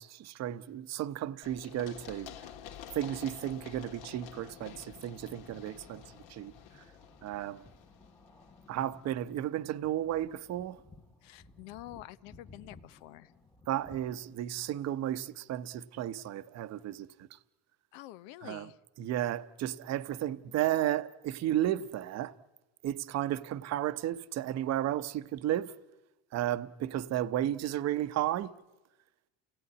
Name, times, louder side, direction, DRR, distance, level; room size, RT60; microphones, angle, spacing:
voice 1, 0.0-2.3 2.9-6.0 6.3-6.5 7.2-7.7 8.7-10.8 13.7-17.4 18.4-18.7 19.0-22.3 22.8-25.7 26.3-28.5, right 12 dB, 40° right, 0.8 m, -33 dB
Run, 1.4-9.1, left 9 dB, 75° left, 2.1 m, -50 dB
sound 1, 4.2-15.1, left 3 dB, 10° left, 1.2 m, -58 dB
voice 2, 11.2-13.3 17.9-18.8, left 15 dB, 90° left, 1.1 m, -48 dB
30.0 x 17.0 x 9.7 m
cardioid pair, 150°, 39 cm